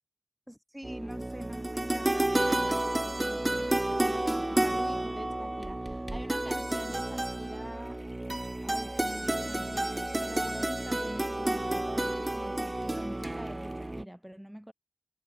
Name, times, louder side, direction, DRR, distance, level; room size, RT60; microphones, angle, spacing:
voice 1, 0.5-8.0 8.6-14.7, equal, 10° right, 4.1 m, -45 dB
sound 1, 0.8-14.0, right 1 dB, 30° right, 2.1 m, -31 dB
wide cardioid pair, 60°, 0 cm